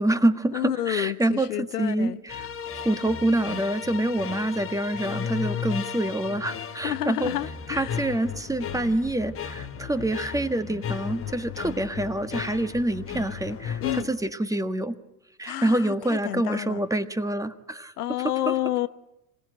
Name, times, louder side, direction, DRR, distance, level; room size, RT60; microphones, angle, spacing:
voice 1, 0.0-2.5 2.8-7.3 7.7-15.0 15.4-17.9 18.5-18.6, right 1 dB, 5° right, 1.5 m, -26 dB
voice 2, 0.5-2.2 6.8-7.9 13.8-14.1 15.4-16.8 18.0-18.9, left 13 dB, 80° left, 1.0 m, -29 dB
sound 1, 2.3-14.0, left 8 dB, 30° left, 1.4 m, -35 dB
26.5 x 18.0 x 9.0 m
hypercardioid pair, 90°, 45 cm